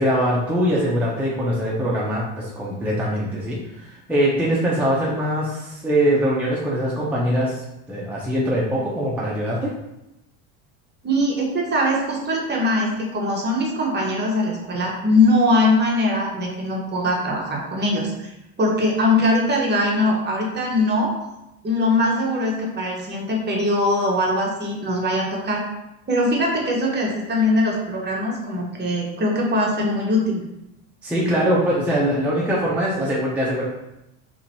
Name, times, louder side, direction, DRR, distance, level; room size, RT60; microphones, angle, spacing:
voice 1, 0.0-7.6 7.9-9.7 31.0-33.6, equal, 5° right, -6 dB, 0.7 m, -22 dB
voice 2, 11.0-18.3 18.6-21.1 21.6-25.6 26.1-30.4, left 1 dB, 25° right, -2 dB, 1.0 m, -21 dB
2.9 x 2.7 x 4.0 m, 0.89 s
supercardioid pair, 105°, 39 cm